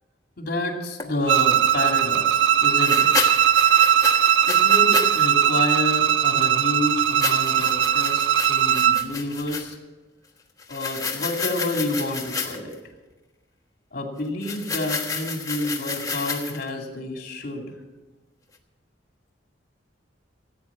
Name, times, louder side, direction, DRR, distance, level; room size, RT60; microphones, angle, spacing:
voice 1, 0.4-3.1 4.5-9.8 10.7-12.7 13.9-17.6, left 1 dB, 55° left, 2 dB, 2.7 m, -29 dB
sound 1, 1.0-1.1 2.8-5.3 5.6-5.8 7.0-9.7 10.6-12.7 14.4-16.7, left 4 dB, 20° left, 1.3 m, -31 dB
Bowed string instrument, 1.3-9.0, right 10 dB, 85° right, 0.5 m, -19 dB
16.0 x 9.2 x 7.4 m, 1.1 s
head